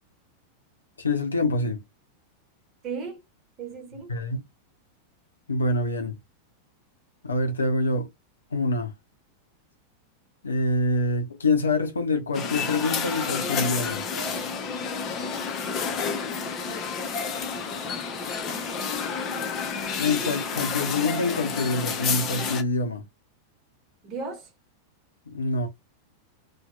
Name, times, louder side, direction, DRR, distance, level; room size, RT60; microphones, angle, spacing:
voice 1, 1.0-1.8 4.1-4.4 5.5-6.2 7.2-8.1 8.5-8.9 10.4-14.0 20.0-23.1 25.3-25.7, left 2 dB, 75° left, 0.6 m, -26 dB
voice 2, 2.8-3.2 3.6-4.1 17.0-19.5 24.0-24.5, right 5 dB, 35° right, 1.1 m, -39 dB
sound 1, 12.3-22.6, left 5 dB, 35° left, 0.6 m, -30 dB
2.7 x 2.3 x 2.3 m
figure-of-eight pair, 90°, 0 cm